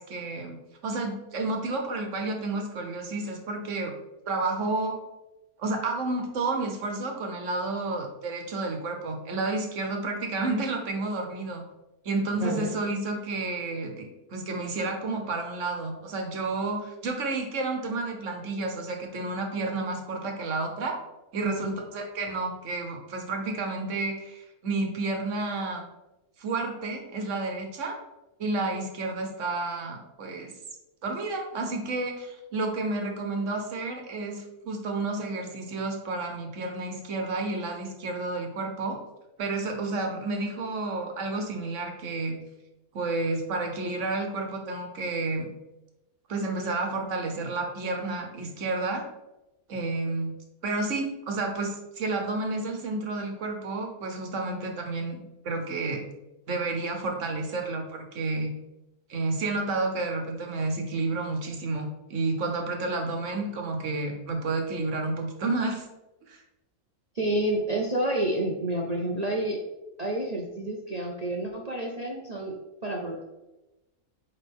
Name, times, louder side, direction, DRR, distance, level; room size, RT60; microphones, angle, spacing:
voice 1, 0.0-3.9 4.3-5.0 5.6-11.6 12.0-21.0 21.3-25.9 26.4-28.0 28.4-30.5 31.0-39.0 39.4-42.4 42.9-45.5 46.3-49.0 49.7-50.3 50.6-56.0 56.5-58.5 59.1-65.9 66.3-66.4, right 3 dB, 60° right, 3 dB, 1.4 m, -31 dB
voice 2, 21.4-21.7 67.1-69.6 70.0-73.2, right 1 dB, 35° right, -1 dB, 0.7 m, -29 dB
9.0 x 3.8 x 3.6 m, 1.0 s
omnidirectional pair, 1.5 m